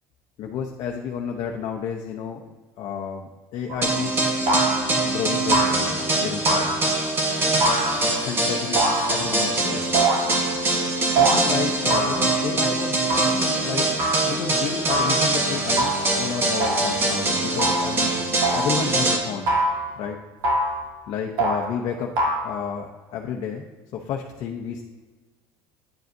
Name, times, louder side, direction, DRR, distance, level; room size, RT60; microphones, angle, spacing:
voice 1, 0.4-2.4 2.8-4.4 5.0-6.7 8.2-8.8 9.1-9.9 11.2-13.9 14.3-18.2 18.5-19.6 20.0-20.2 21.1-22.1 22.4-23.6 23.9-24.8, left 7 dB, 55° left, 1 dB, 0.7 m, -31 dB
sound 1, 3.7-4.0 4.5-5.0 5.5-6.0 6.5-7.1 7.6-8.2 8.8-9.5 9.9-10.5 11.2-11.4 11.9-12.5 13.1-13.4 14.0-14.3 14.9-15.3 15.8-16.1 16.6-17.0 17.6-18.0 18.4-18.8 19.5-19.9 20.4-20.8 21.4-21.7 22.2-22.4, right 2 dB, 65° right, 1.7 m, -24 dB
sound 2, 3.8-19.2, right 2 dB, 25° right, 1.3 m, -23 dB
9.3 x 7.6 x 2.7 m, 1.3 s
cardioid pair, 130°, 9 cm